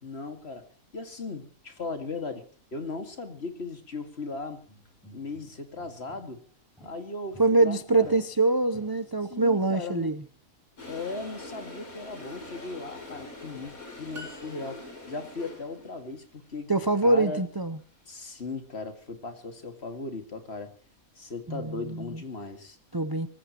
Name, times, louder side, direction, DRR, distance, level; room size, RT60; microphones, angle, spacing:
voice 1, 0.0-4.6 5.1-6.4 6.8-8.2 9.3-10.2 10.9-16.7 17.0-17.4 18.1-20.7 21.2-22.8, left 3 dB, 45° left, 7 dB, 2.3 m, -37 dB
sound 1, 4.7-6.4 6.8-9.4, right 2 dB, ahead, 6.7 m, -53 dB
voice 2, 7.4-10.2 16.7-17.8 21.5-22.2 22.9-23.3, right 2 dB, 25° right, 11 dB, 0.6 m, -24 dB
Toilet flush, 10.8-16.0, left 2 dB, 80° left, 3.9 m, -44 dB
sound 2, 14.1-15.3, left 1 dB, 55° right, 3.3 m, -46 dB
24.0 x 14.5 x 3.0 m, 0.43 s
omnidirectional pair, 1.5 m